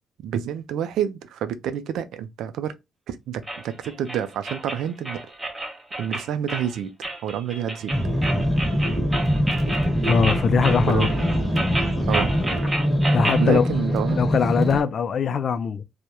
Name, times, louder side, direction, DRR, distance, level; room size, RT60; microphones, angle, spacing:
voice 1, 0.2-2.8 3.1-5.2 6.0-7.9 10.8-11.1 12.1-12.3 13.4-14.2, right 9 dB, 80° right, 0.3 m, -28 dB
sound 1, 3.5-13.5, right 1 dB, 15° right, 0.8 m, -31 dB
sound 2, 7.9-14.8, equal, ahead, 1.1 m, -23 dB
voice 2, 10.0-11.1 13.1-13.7 14.1-15.8, left 6 dB, 55° left, 0.3 m, -22 dB
2.2 x 2.0 x 2.8 m
cardioid pair, 90°, 0 cm